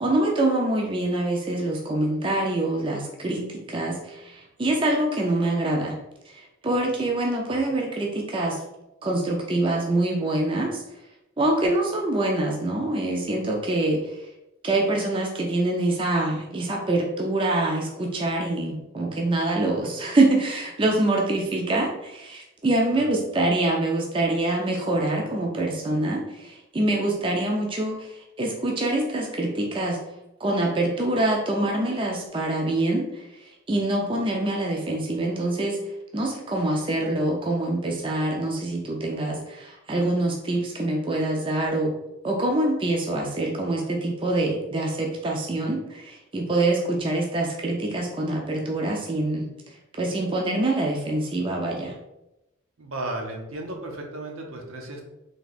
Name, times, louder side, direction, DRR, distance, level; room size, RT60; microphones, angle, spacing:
voice 1, 0.0-6.0 6.3-8.6 9.0-10.8 11.4-14.3 14.6-30.0 30.4-35.8 36.1-41.9 42.2-49.5 49.9-51.9, right 2 dB, 25° right, 0 dB, 0.4 m, -25 dB
voice 2, 52.8-55.0, right 2 dB, 80° right, 1 dB, 0.8 m, -34 dB
3.4 x 2.8 x 4.0 m, 0.93 s
head